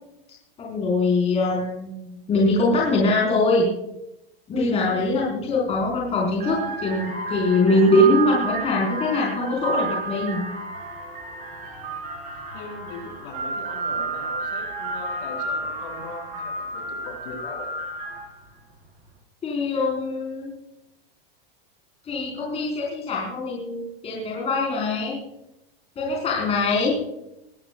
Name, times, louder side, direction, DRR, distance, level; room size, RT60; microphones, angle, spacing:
voice 1, 0.6-3.7 4.5-10.4 19.4-20.5 22.0-25.2 26.0-27.0, left 2 dB, 20° left, -3 dB, 4.5 m, -22 dB
sound 1, 5.7-5.9 6.3-18.4, right 3 dB, 25° right, 4.5 m, -31 dB
voice 2, 12.5-17.8, left 3 dB, 55° left, 2 dB, 6.6 m, -39 dB
21.5 x 15.5 x 2.4 m, 0.82 s
supercardioid pair, 160°, 31 cm